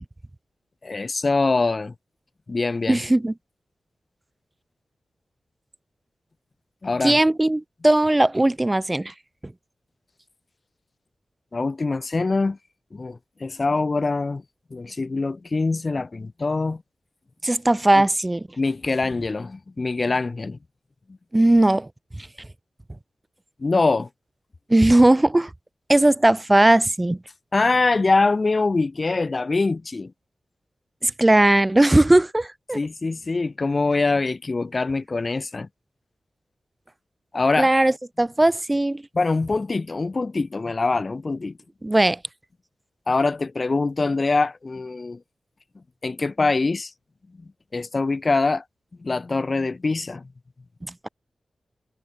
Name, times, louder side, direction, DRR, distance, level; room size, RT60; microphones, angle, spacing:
voice 1, 0.8-1.9 2.5-3.0 6.8-7.2 11.5-12.6 12.9-14.4 14.7-16.8 17.9-18.0 18.6-20.6 23.6-24.1 27.5-30.1 32.7-35.7 37.3-37.7 39.1-41.5 43.1-45.2 46.0-46.9 47.7-48.6 49.0-50.3, left 3 dB, 45° left, 6.0 m, -23 dB
voice 2, 2.9-3.3 7.0-9.1 9.4-9.5 17.4-18.5 21.3-21.9 22.2-22.3 24.7-25.5 25.9-27.2 31.0-32.8 37.6-39.0 41.8-42.2, right 1 dB, 20° right, 3.9 m, -18 dB
cardioid pair, 45°, 0 cm